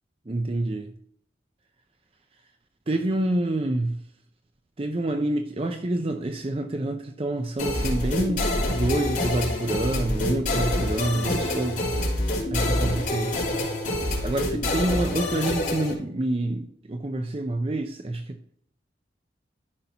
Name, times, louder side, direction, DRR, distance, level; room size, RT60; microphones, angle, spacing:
voice 1, 0.3-0.9 2.9-4.0 4.8-12.0 12.5-13.3 14.2-18.4, right 1 dB, 35° right, 0.5 m, -27 dB
sound 1, 7.6-15.9, left 1 dB, 50° left, 3.4 m, -26 dB
13.0 x 5.7 x 2.8 m
head